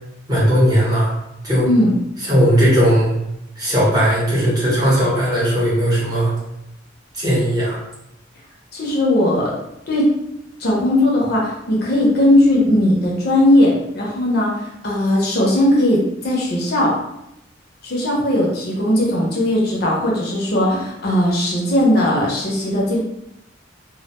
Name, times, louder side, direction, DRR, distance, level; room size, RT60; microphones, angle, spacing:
voice 1, 0.3-1.1 1.4-1.7 2.2-3.1 3.6-6.3 7.1-7.8, equal, 20° right, -8 dB, 0.8 m, -17 dB
voice 2, 1.7-2.0 8.7-9.5 9.9-10.1 10.6-16.9 17.8-23.0, left 1 dB, 55° left, -4 dB, 0.6 m, -18 dB
2.2 x 2.1 x 2.9 m, 0.84 s
head